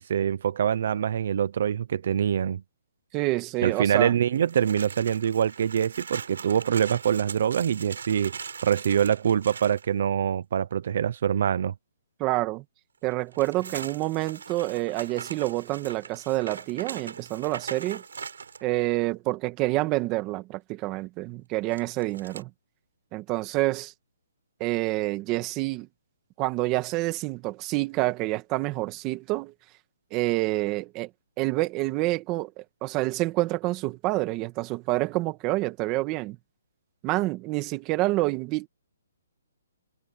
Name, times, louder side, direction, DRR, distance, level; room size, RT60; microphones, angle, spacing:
voice 1, 0.0-2.6 3.6-11.7, right 8 dB, 50° right, 0.9 m, -25 dB
voice 2, 3.1-4.1 12.2-12.6 13.0-18.0 18.6-22.5 23.1-23.9 24.6-25.9 26.4-29.5 30.1-31.1 31.4-36.4 37.0-38.7, right 19 dB, 20° right, 1.8 m, -27 dB
sound 1, 4.3-9.9 13.1-18.6 21.7-22.4, right 6 dB, 75° right, 7.3 m, -40 dB
hypercardioid pair, 170°, 0 cm